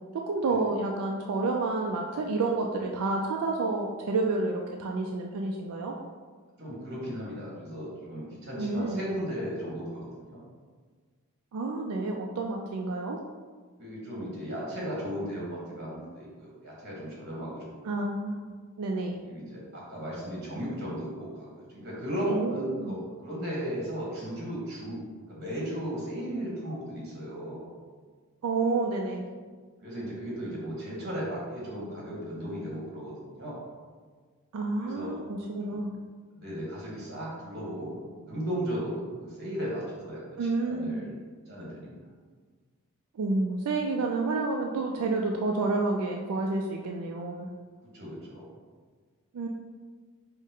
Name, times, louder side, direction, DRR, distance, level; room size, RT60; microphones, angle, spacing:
voice 1, 0.1-6.0 8.6-9.1 11.5-13.2 17.8-18.4 18.8-19.2 22.3-23.0 28.4-29.2 34.5-36.0 40.4-41.1 43.1-47.5 49.3-49.5, right 3 dB, 90° right, 1 dB, 0.4 m, -29 dB
voice 2, 6.6-10.4 13.8-17.7 19.2-27.6 29.8-33.6 34.8-35.1 35.6-35.8 36.4-41.1 41.5-42.0 47.9-48.5, equal, 50° right, -5 dB, 1.5 m, -36 dB
5.3 x 2.1 x 3.7 m, 1.5 s
head